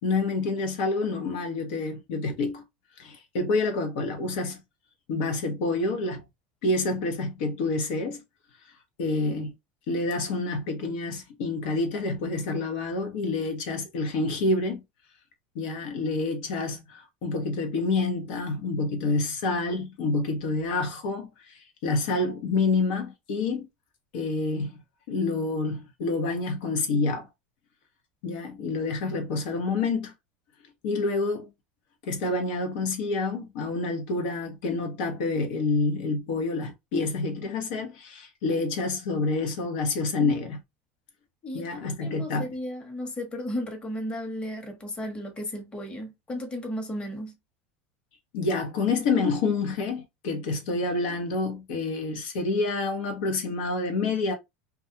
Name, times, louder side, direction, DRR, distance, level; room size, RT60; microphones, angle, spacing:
voice 1, 0.0-2.6 3.0-4.6 5.1-6.2 6.6-8.2 9.0-9.5 9.9-14.8 15.5-23.7 24.1-24.7 25.1-27.3 28.2-30.1 30.8-31.5 32.0-40.6 41.5-42.5 48.3-54.3, left 3 dB, 70° left, 0.8 m, -28 dB
voice 2, 41.4-47.3, left 1 dB, 20° left, 0.9 m, -34 dB
2.3 x 2.3 x 2.7 m
supercardioid pair, 110°, 6 cm